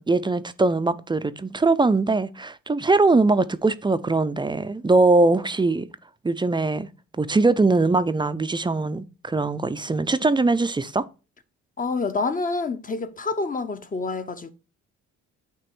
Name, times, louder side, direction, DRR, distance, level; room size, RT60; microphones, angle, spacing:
voice 1, 0.0-5.9 6.2-6.9 7.2-11.1, right 3 dB, 15° right, 0.4 m, -21 dB
voice 2, 11.8-14.5, left 3 dB, 25° left, 0.8 m, -27 dB
8.8 x 3.0 x 4.4 m
cardioid pair, 90°, 30 cm